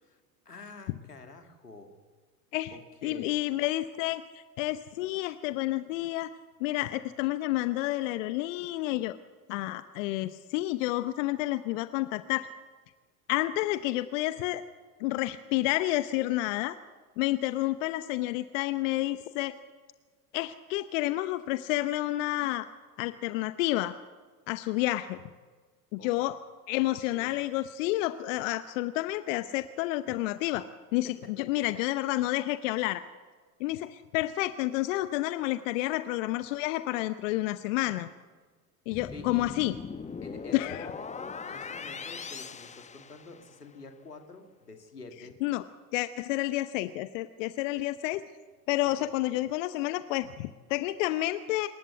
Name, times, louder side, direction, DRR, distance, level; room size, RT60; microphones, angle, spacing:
voice 1, 0.0-1.9 2.7-3.3 26.0-26.1 27.1-27.3 31.0-31.5 39.1-39.6 40.2-45.4 49.0-49.1, left 3 dB, 90° left, 5 dB, 2.7 m, -48 dB
voice 2, 3.0-9.2 9.5-12.5 13.3-14.6 15.0-16.8 17.2-19.5 20.3-22.7 23.0-23.9 24.5-25.2 25.9-26.4 26.7-33.0 33.6-38.1 38.9-39.7 40.5-40.9 45.4-45.6 45.9-48.2 48.7-51.7, left 16 dB, 55° left, 13 dB, 1.0 m, -30 dB
sound 1, 38.9-43.7, left 5 dB, 15° left, 1.1 m, -40 dB
26.5 x 14.5 x 8.2 m, 1.5 s
figure-of-eight pair, 80°, 46 cm